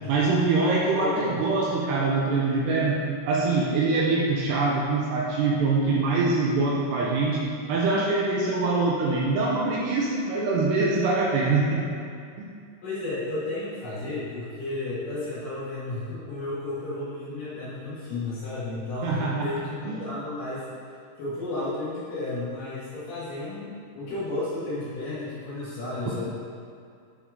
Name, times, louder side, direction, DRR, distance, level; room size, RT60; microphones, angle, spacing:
voice 1, 0.1-3.0 3.3-7.4 7.7-11.9 12.4-12.5 19.0-19.5 19.9-20.0, right 3 dB, 80° right, -3 dB, 2.7 m, -24 dB
voice 2, 0.9-1.4 12.8-26.4, left 2 dB, 55° left, -9 dB, 2.8 m, -33 dB
12.0 x 5.4 x 3.6 m, 2.3 s
omnidirectional pair, 5.4 m